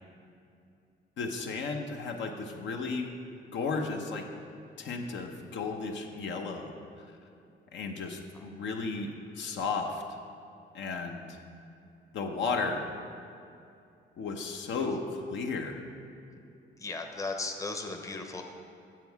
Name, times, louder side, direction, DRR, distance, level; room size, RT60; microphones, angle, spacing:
voice 1, 1.2-3.1 3.5-4.2 4.8-6.7 7.7-10.0 10.7-11.4 12.1-12.8 14.2-15.7, left 4 dB, 70° left, 3 dB, 0.8 m, -34 dB
voice 2, 16.8-18.4, left 3 dB, 15° left, 4 dB, 0.7 m, -36 dB
7.5 x 7.1 x 4.6 m, 2.6 s
cardioid pair, 90°, 20 cm